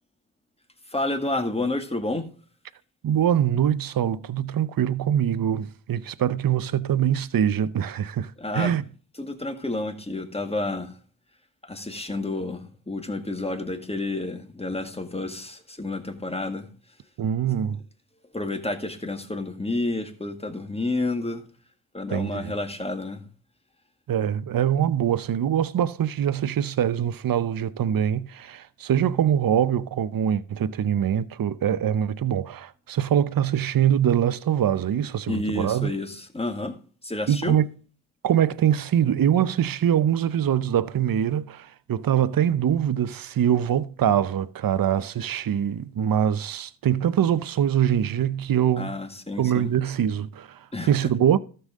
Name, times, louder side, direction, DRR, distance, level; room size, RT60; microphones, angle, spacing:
voice 1, 0.9-2.3 8.4-8.7 9.2-11.0 11.6-16.7 18.3-21.4 21.9-23.2 35.3-36.8 37.0-37.6 48.8-49.7 50.7-51.1, left 2 dB, 15° left, 1.9 m, -30 dB
voice 2, 3.0-8.8 17.2-17.8 22.1-22.5 24.1-35.9 37.3-37.7 38.2-49.0 49.4-50.6 50.9-51.4, right 9 dB, 45° right, 0.8 m, -23 dB
13.0 x 7.0 x 3.7 m
supercardioid pair, 50°, 46 cm